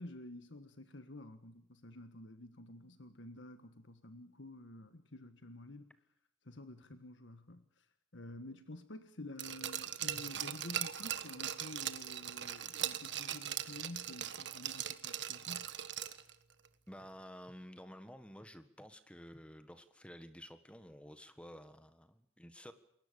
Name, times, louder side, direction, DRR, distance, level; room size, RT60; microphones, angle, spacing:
voice 1, 0.0-5.9 6.4-7.9 8.1-15.7, left 1 dB, 65° left, 9 dB, 1.5 m, -50 dB
Glass, 9.4-16.3 16.6-16.7, right 10 dB, 60° right, 1.4 m, -40 dB
voice 2, 16.9-22.7, equal, 5° left, 10 dB, 1.5 m, -52 dB
29.0 x 22.0 x 6.9 m, 0.69 s
head